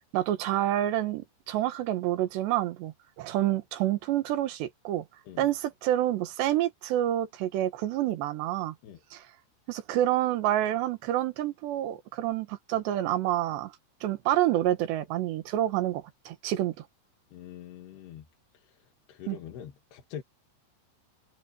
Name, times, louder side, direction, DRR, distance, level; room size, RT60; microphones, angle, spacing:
voice 1, 0.0-5.1 5.4-8.8 9.1-9.3 9.7-13.7 14.0-16.7 19.3-19.4, right 13 dB, 80° right, 3.6 m, -28 dB
voice 2, 17.3-18.3 18.5-20.2, left 10 dB, 70° left, 3.9 m, -44 dB
omnidirectional pair, 5.1 m